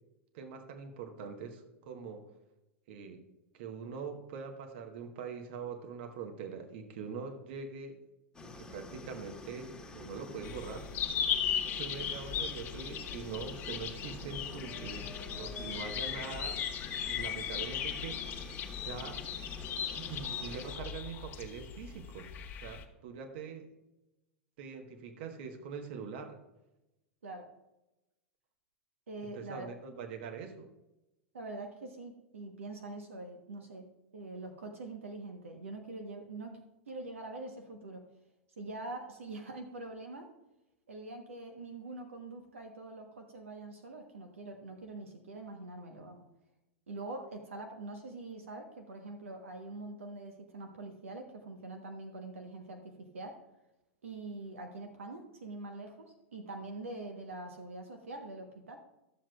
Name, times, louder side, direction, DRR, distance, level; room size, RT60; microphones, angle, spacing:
voice 1, 0.3-2.3 2.9-3.2 3.5-8.0 8.4-10.9 11.7-16.6 17.0-19.4 20.0-22.3 22.6-23.7 24.6-26.4 29.3-30.7, right 5 dB, 55° right, 5 dB, 1.3 m, -43 dB
sound 1, 8.3-20.8, left 2 dB, 10° left, 1.5 m, -48 dB
sound 2, 10.4-22.8, left 8 dB, 35° left, 1.3 m, -37 dB
voice 2, 29.1-29.7 31.3-36.6 36.9-38.1 38.6-40.3 40.9-46.3 46.9-53.4 54.0-58.8, right 2 dB, 75° right, 5 dB, 1.1 m, -44 dB
13.5 x 7.4 x 2.4 m, 0.94 s
figure-of-eight pair, 90°, 7 cm